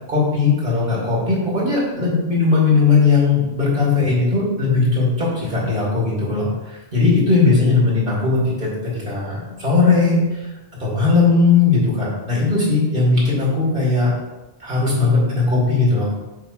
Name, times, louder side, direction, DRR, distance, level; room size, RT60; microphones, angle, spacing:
voice 1, 0.1-10.5 10.8-14.1 14.6-16.1, left 4 dB, 60° right, -6 dB, 2.6 m, -18 dB
7.6 x 4.8 x 3.2 m, 1.1 s
omnidirectional pair, 1.0 m